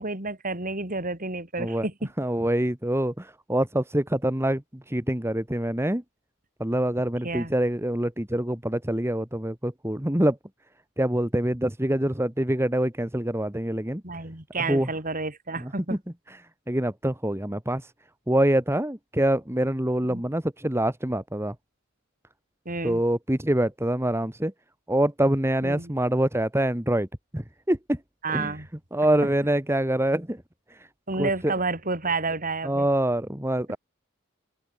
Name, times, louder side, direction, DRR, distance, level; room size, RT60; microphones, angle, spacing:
voice 1, 0.0-2.1 7.2-7.5 14.0-16.0 20.1-20.2 22.7-23.0 25.6-25.9 28.2-28.7 31.1-32.9, right 3 dB, 40° right, 5.5 m, -30 dB
voice 2, 2.2-4.6 4.9-6.0 6.6-10.4 11.0-14.0 14.7-14.9 15.6-16.0 16.7-17.8 18.3-21.5 22.8-24.5 24.9-27.1 27.3-28.0 28.3-28.5 28.9-30.4 30.7-30.8 31.2-31.5 32.6-33.8, right 1 dB, 10° right, 1.8 m, -25 dB
head